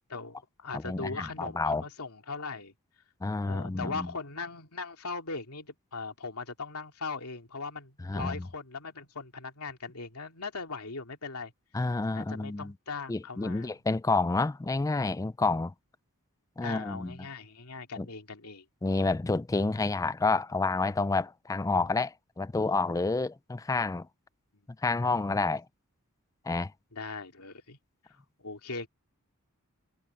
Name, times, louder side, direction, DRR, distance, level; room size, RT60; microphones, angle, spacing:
voice 1, 0.1-2.7 3.4-11.5 12.1-13.7 16.6-18.6 24.5-24.6 26.9-27.8 28.1-28.9, left 4 dB, 85° left, 2.6 m, -39 dB
voice 2, 0.7-1.8 3.2-4.1 8.0-8.5 11.7-12.7 13.1-15.7 16.6-17.2 18.0-18.1 18.8-24.1 24.8-25.6 26.5-26.7, left 3 dB, 15° left, 0.3 m, -29 dB
head